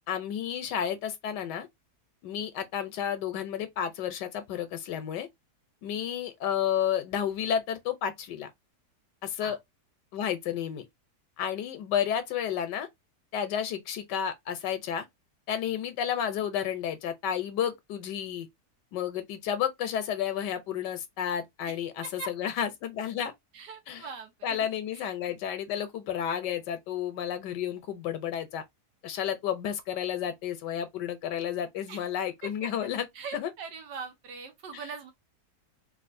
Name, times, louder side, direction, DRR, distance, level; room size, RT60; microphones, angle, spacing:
voice 1, 0.1-1.7 2.2-5.3 5.8-8.5 9.2-9.6 10.1-10.9 11.4-12.9 13.3-15.1 15.5-18.5 18.9-23.3 23.9-24.1 24.4-28.6 29.0-33.1 33.3-33.5 34.7-34.8, left 9 dB, 80° left, 1.3 m, -31 dB
voice 2, 21.6-22.3 23.5-24.7 24.9-25.1 31.9-32.1 32.4-32.7 33.1-35.1, right 5 dB, 85° right, 1.5 m, -42 dB
3.4 x 2.4 x 2.5 m
omnidirectional pair, 1.8 m